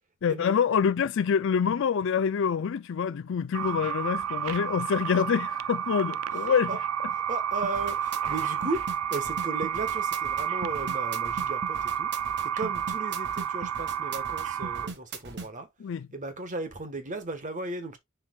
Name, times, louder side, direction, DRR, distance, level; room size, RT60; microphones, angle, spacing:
voice 1, 0.2-6.8 15.8-16.1, left 7 dB, 60° left, 0.4 m, -26 dB
sound 1, 3.5-14.9, right 9 dB, 75° right, 0.4 m, -31 dB
voice 2, 7.1-8.8 9.1-12.1 12.4-15.7 16.1-18.0, right 2 dB, 35° right, 1.3 m, -35 dB
sound 2, 7.6-15.5, right 3 dB, 55° right, 1.3 m, -39 dB
9.8 x 4.7 x 2.3 m
head